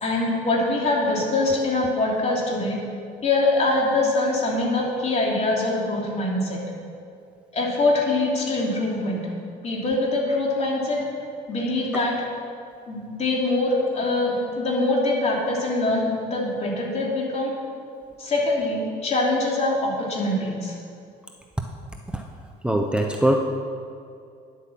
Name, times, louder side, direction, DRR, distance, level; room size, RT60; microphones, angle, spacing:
voice 1, 0.0-2.8 3.2-6.6 7.5-9.2 9.6-11.0 11.5-12.3 12.9-17.5 18.2-20.7, left 2 dB, 40° left, -2 dB, 3.1 m, -23 dB
voice 2, 22.6-23.4, right 1 dB, 5° right, 2 dB, 0.7 m, -21 dB
10.5 x 8.1 x 7.4 m, 2.5 s
cardioid pair, 110°, 17 cm